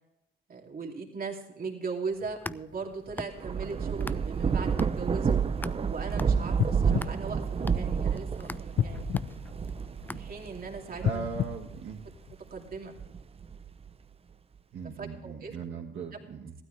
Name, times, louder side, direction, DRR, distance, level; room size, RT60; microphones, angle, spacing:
voice 1, 0.5-5.4 5.9-9.1 10.1-11.3 12.5-13.0 15.0-15.5 16.1-16.3, right 4 dB, 45° right, 0 dB, 2.8 m, -38 dB
sound 1, 2.1-4.5 4.8-10.7, left 2 dB, 10° left, 0.3 m, -43 dB
Thunder / Rain, 3.1-12.0 12.6-13.9, right 6 dB, 30° right, 0.6 m, -30 dB
sound 2, 6.6-8.2 8.7-10.3 10.9-12.6 13.2-13.3, left 9 dB, 55° left, 0.6 m, -33 dB
voice 2, 11.0-12.0 14.7-16.5, right 6 dB, 65° right, -3 dB, 1.8 m, -38 dB
15.5 x 12.5 x 3.4 m, 0.93 s
cardioid pair, 90°, 20 cm